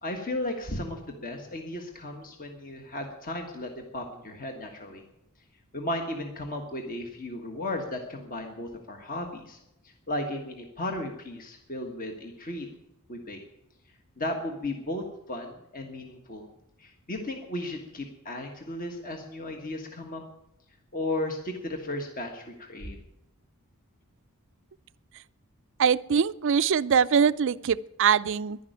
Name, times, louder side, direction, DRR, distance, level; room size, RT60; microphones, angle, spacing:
voice 1, 0.0-5.0 5.7-9.6 9.8-12.7 13.1-13.4 14.2-16.5 16.8-20.2 20.9-23.0, left 1 dB, 40° left, 3 dB, 1.5 m, -35 dB
voice 2, 25.8-28.6, right 7 dB, 55° right, 17 dB, 0.4 m, -23 dB
11.0 x 11.0 x 9.3 m, 0.86 s
head